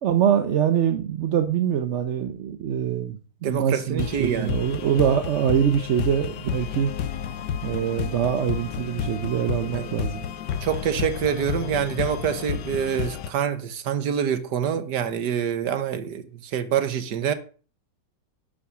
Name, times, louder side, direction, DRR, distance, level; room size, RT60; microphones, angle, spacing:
voice 1, 0.0-6.9 7.6-10.2, right 9 dB, 55° right, 0.8 m, -24 dB
voice 2, 3.4-4.6 9.5-9.9 10.6-17.3, right 8 dB, 70° right, 1.6 m, -26 dB
sound 1, 4.0-13.3, left 9 dB, 85° left, 1.4 m, -31 dB
11.5 x 6.2 x 6.1 m
omnidirectional pair, 1.9 m